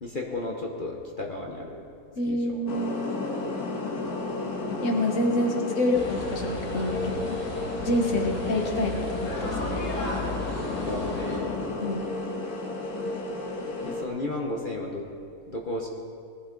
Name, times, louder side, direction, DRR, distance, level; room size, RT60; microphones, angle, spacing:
voice 1, 0.0-1.8 2.3-2.6 8.1-8.3 10.8-11.6 13.8-15.1 15.4-15.9, left 2 dB, 35° left, -1 dB, 1.1 m, -34 dB
voice 2, 2.2-2.9 4.8-7.4 7.9-9.8 11.8-12.1, left 1 dB, 55° left, 3 dB, 1.6 m, -27 dB
sound 1, 2.7-14.0, left 2 dB, 70° left, 1.7 m, -32 dB
sound 2, 5.9-11.4, left 1 dB, 90° left, 2.4 m, -34 dB
19.0 x 10.5 x 3.9 m, 2.4 s
omnidirectional pair, 1.7 m